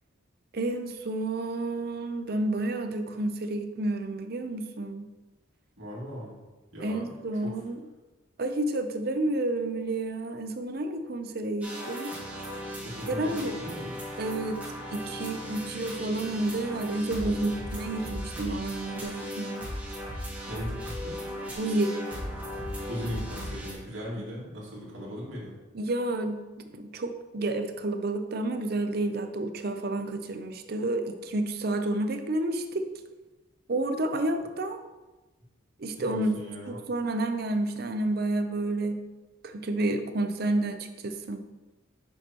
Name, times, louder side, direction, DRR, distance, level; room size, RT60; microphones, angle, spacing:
voice 1, 0.5-5.1 6.8-7.8 8.4-12.2 13.1-13.5 14.2-14.6 14.9-19.7 21.6-22.0 25.7-26.4 26.7-32.9 33.7-34.8 35.8-36.4 36.7-39.0 39.4-41.4, right 2 dB, 50° right, 7 dB, 0.6 m, -30 dB
voice 2, 5.8-6.4 6.7-7.1 7.4-7.6 12.8-14.0 17.2-17.8 20.5-21.2 22.9-25.5 36.0-36.8, equal, 85° right, -5 dB, 2.3 m, -38 dB
sound 1, 11.6-23.7, equal, 10° right, 1.4 m, -37 dB
8.0 x 6.5 x 3.0 m, 1.2 s
head